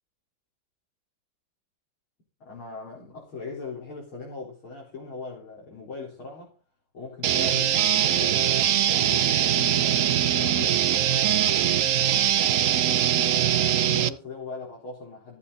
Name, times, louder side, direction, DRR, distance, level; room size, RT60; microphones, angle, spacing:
voice 1, 2.4-6.6 6.9-11.5 12.8-15.4, left 3 dB, 80° left, 5.1 m, -40 dB
sound 1, 7.2-14.1, right 10 dB, 75° right, 0.7 m, -22 dB
15.0 x 8.3 x 4.1 m
omnidirectional pair, 2.3 m